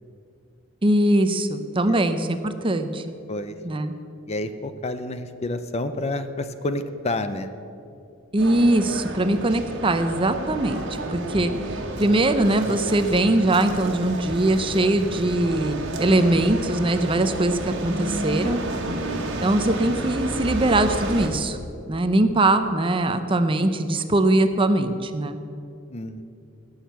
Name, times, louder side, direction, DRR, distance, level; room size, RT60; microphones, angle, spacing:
voice 1, 0.8-3.2 3.6-3.9 8.3-10.8 11.1-11.5 12.0-18.6 19.4-21.6 21.9-25.4, right 1 dB, 25° right, 9 dB, 0.6 m, -21 dB
voice 2, 4.3-7.5 25.9-26.2, left 2 dB, 30° left, 10 dB, 0.6 m, -29 dB
sound 1, 8.4-21.3, right 1 dB, 60° right, 1.6 m, -31 dB
17.0 x 6.5 x 8.1 m, 2.6 s
head